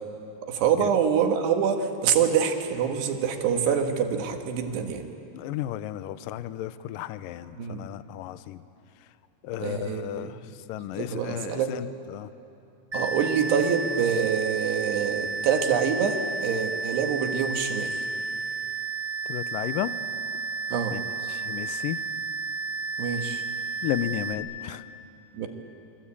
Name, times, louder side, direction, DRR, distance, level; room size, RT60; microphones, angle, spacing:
voice 1, 0.5-5.0 7.6-7.8 9.6-10.3 11.0-11.7 12.9-18.0 20.7-21.0 23.0-23.4 25.3-25.5, right 7 dB, 80° right, 4 dB, 3.8 m, -26 dB
voice 2, 5.3-8.6 9.4-10.4 10.7-12.3 19.3-19.9 20.9-21.0 21.3-22.0 23.8-24.8, left 13 dB, 80° left, 13 dB, 2.0 m, -33 dB
sound 1, 12.9-24.3, right 4 dB, 30° right, 1.7 m, -32 dB
29.0 x 23.5 x 8.6 m, 2.8 s
omnidirectional pair, 4.7 m